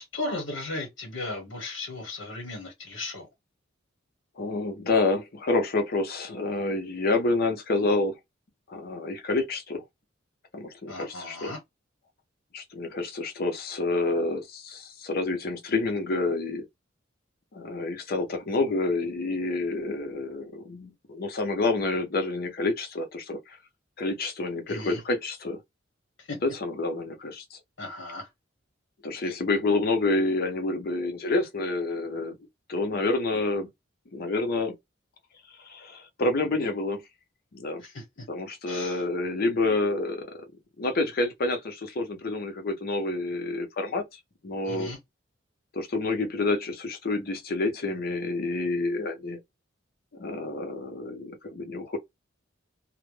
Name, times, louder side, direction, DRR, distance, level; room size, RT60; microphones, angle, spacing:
voice 1, 0.0-3.3 10.9-11.6 24.7-25.0 26.2-26.4 27.8-28.3 37.8-38.3 38.7-39.0 44.6-45.0, left 2 dB, 75° left, 0.9 m, -36 dB
voice 2, 4.4-8.2 8.7-9.8 10.5-11.5 12.5-16.6 17.5-23.6 24.0-25.6 26.4-27.6 29.0-32.4 32.7-33.7 34.1-34.7 35.6-37.0 37.5-37.8 38.3-40.3 40.8-44.0 44.4-44.9 45.7-49.4 50.1-52.0, left 2 dB, 55° left, 0.6 m, -28 dB
2.1 x 2.1 x 3.1 m
head